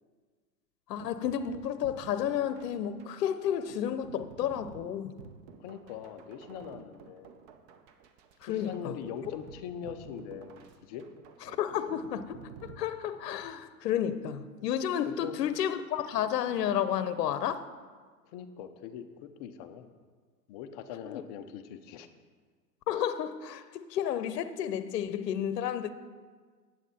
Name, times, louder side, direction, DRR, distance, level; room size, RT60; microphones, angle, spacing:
voice 1, 0.9-5.1 8.4-8.9 11.5-17.7 21.0-21.2 22.9-25.9, left 9 dB, 70° left, 12 dB, 0.7 m, -31 dB
sound 1, 1.0-13.6, right 6 dB, 30° right, 0.7 m, -52 dB
voice 2, 5.6-7.3 8.5-11.0 15.1-15.4 18.3-19.9 20.5-22.1, left 8 dB, 25° left, 8 dB, 0.4 m, -42 dB
9.1 x 8.1 x 4.1 m, 1.5 s
hypercardioid pair, 115°, 49 cm